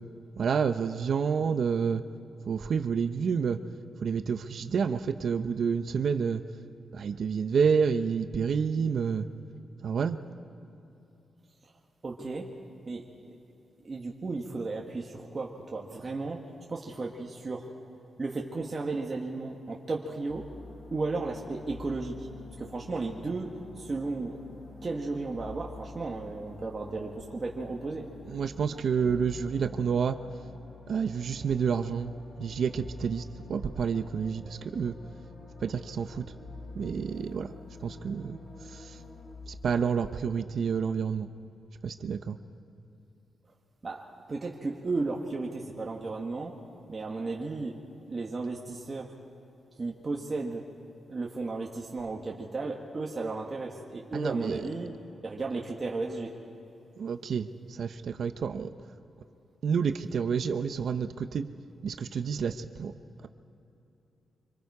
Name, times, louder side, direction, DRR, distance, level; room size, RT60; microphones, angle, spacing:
voice 1, 0.4-2.0 2.5-3.6 4.0-6.4 6.9-9.3 9.8-10.2 28.3-30.2 30.9-32.1 32.4-34.9 35.6-36.2 36.8-37.5 37.8-38.4 38.7-39.0 39.5-41.3 41.8-42.4 54.1-54.6 57.0-58.7 59.6-61.5 61.8-62.9, right 6 dB, 55° right, 9 dB, 0.7 m, -29 dB
voice 2, 12.0-12.5 12.8-13.3 13.8-16.4 16.7-17.7 18.2-20.4 20.9-22.2 22.6-23.5 23.8-24.4 24.8-28.1 43.8-46.6 46.9-47.8 48.1-49.1 49.8-50.7 51.1-54.9 55.2-56.3, right 3 dB, 30° right, -2 dB, 1.4 m, -34 dB
sound 1, 20.3-39.3, left 3 dB, 55° left, 6.1 m, -47 dB
25.5 x 25.0 x 4.8 m, 2.9 s
wide cardioid pair, 155°, 0 cm